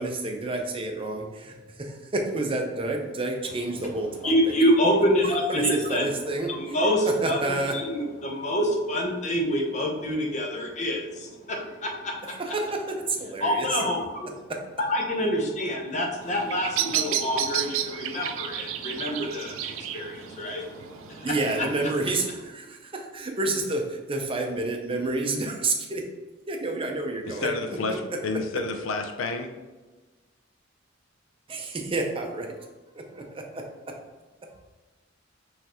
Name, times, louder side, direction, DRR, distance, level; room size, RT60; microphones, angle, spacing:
voice 1, 0.0-4.3 5.5-6.8 7.2-7.7 12.3-13.8 21.2-26.0 26.5-27.5 27.9-28.0 31.5-32.7 32.9-33.4, right 2 dB, 30° right, 2 dB, 0.6 m, -29 dB
voice 2, 4.2-6.1 6.6-7.4 7.7-12.2 13.4-14.3 14.8-21.3, equal, 35° left, 1 dB, 0.8 m, -26 dB
Bird vocalization bird call bird song, 16.2-22.2, right 11 dB, 80° right, 0.3 m, -32 dB
voice 3, 27.3-29.5, left 3 dB, 85° left, 6 dB, 0.5 m, -30 dB
5.5 x 3.2 x 2.9 m, 1.2 s
head